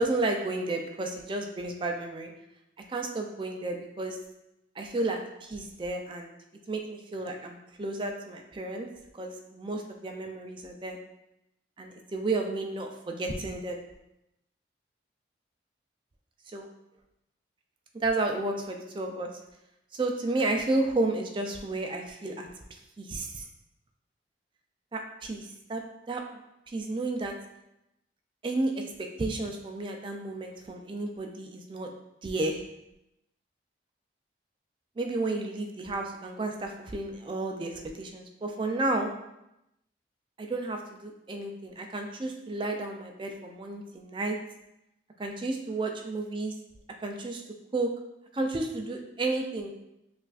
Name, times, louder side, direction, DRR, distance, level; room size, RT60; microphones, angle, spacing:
voice 1, 0.0-2.3 2.9-4.2 4.8-6.3 6.7-8.9 9.2-11.0 11.8-13.8 16.5-16.7 18.0-19.3 19.9-22.5 23.0-23.5 24.9-25.8 26.1-26.2 26.7-27.3 28.4-28.8 29.2-31.9 32.2-32.6 35.0-39.1 40.4-44.4 45.2-46.5 47.0-47.4 47.7-47.9 48.3-49.7, right 2 dB, 25° right, 3 dB, 0.3 m, -32 dB
5.4 x 2.5 x 2.4 m, 0.87 s
head